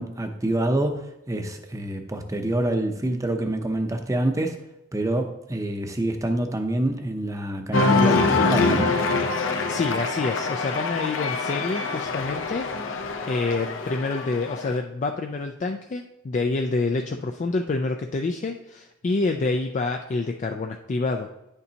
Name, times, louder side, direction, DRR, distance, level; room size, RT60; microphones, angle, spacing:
voice 1, 0.0-4.6 4.9-8.9, right 1 dB, 15° right, 5 dB, 0.6 m, -26 dB
Cheering, 7.7-14.8, left 3 dB, 70° left, 0.7 m, -25 dB
voice 2, 9.7-21.3, left 3 dB, 35° left, 4 dB, 0.3 m, -27 dB
10.0 x 6.7 x 2.8 m, 0.91 s
head